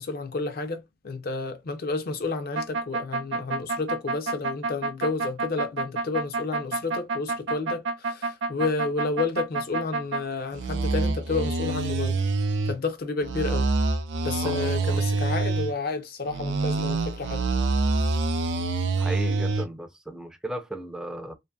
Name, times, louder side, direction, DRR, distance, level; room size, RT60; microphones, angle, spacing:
voice 1, 0.0-12.2 12.7-13.7 14.2-17.5, left 3 dB, 55° left, 0.5 m, -30 dB
sound 1, 2.5-10.2 10.5-12.7 13.2-15.7 16.3-19.7, right 3 dB, 70° right, 0.4 m, -26 dB
voice 2, 14.4-15.0 19.0-21.3, right 1 dB, 5° right, 0.4 m, -36 dB
2.6 x 2.5 x 2.2 m
head